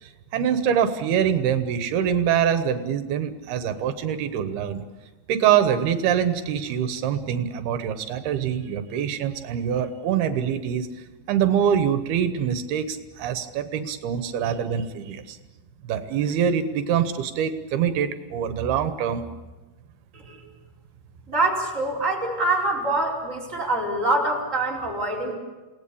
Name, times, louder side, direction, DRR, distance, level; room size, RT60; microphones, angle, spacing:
voice 1, 0.0-4.8 5.3-10.9 11.3-15.4 15.8-19.2, right 8 dB, 85° right, 9 dB, 3.1 m, -24 dB
voice 2, 21.3-25.3, right 2 dB, 20° right, -3 dB, 5.0 m, -25 dB
28.5 x 18.5 x 8.5 m, 1.2 s
omnidirectional pair, 4.4 m